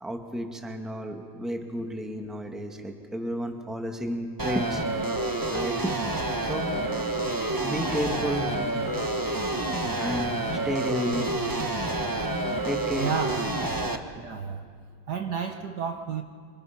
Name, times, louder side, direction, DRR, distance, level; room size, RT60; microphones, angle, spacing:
voice 1, 0.0-4.8 5.5-6.0 6.5-6.7 7.6-8.5 10.0-11.3 12.7-13.1, equal, ahead, 3 dB, 1.6 m, -32 dB
sound 1, 4.4-14.0, right 2 dB, 15° right, 0.7 m, -28 dB
voice 2, 13.0-13.4 14.1-14.7 15.1-16.2, right 7 dB, 60° right, 5 dB, 1.4 m, -31 dB
26.5 x 26.0 x 6.0 m, 2.1 s
omnidirectional pair, 2.3 m